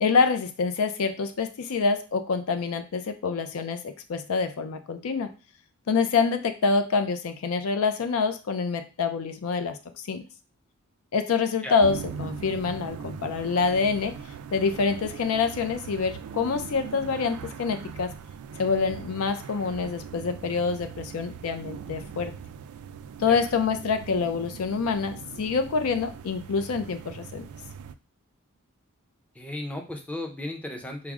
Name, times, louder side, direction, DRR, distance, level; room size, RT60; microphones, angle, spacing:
voice 1, 0.0-5.3 5.9-9.8 10.1-10.2 11.1-14.2 14.5-18.1 18.6-22.3 23.2-27.5, left 5 dB, 70° left, 9 dB, 0.4 m, -26 dB
sound 1, 11.8-27.9, right 7 dB, 80° right, 0.3 m, -40 dB
voice 2, 29.3-31.1, left 1 dB, 5° left, 2 dB, 0.5 m, -35 dB
4.7 x 2.0 x 3.5 m, 0.33 s
head